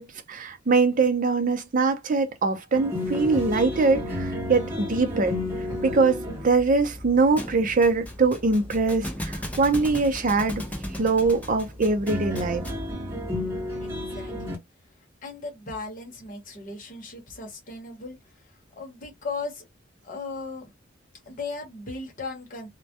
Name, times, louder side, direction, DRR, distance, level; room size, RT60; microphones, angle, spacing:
voice 1, 0.0-5.4 5.8-10.6 11.0-12.6, right 3 dB, 45° right, 0.5 m, -23 dB
sound 1, 2.7-14.5, left 1 dB, 10° right, 1.0 m, -34 dB
Thump thud, 7.4-12.9, equal, 10° left, 0.5 m, -37 dB
voice 2, 13.8-14.6 15.2-18.2 18.4-19.6 20.0-20.7 21.3-22.7, left 3 dB, 45° left, 0.8 m, -37 dB
2.2 x 2.1 x 2.7 m
head